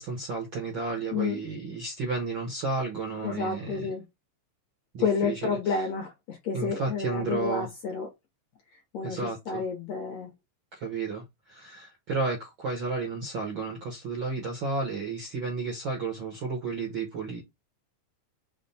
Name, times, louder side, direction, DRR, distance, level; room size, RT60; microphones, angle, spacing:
voice 1, 0.0-3.9 4.9-5.5 6.5-7.7 9.0-9.6 10.7-17.4, right 3 dB, 60° right, 1.2 m, -32 dB
voice 2, 3.2-4.0 5.0-8.1 8.9-10.3, left 5 dB, 65° left, 1.7 m, -30 dB
5.9 x 2.2 x 4.1 m
omnidirectional pair, 3.8 m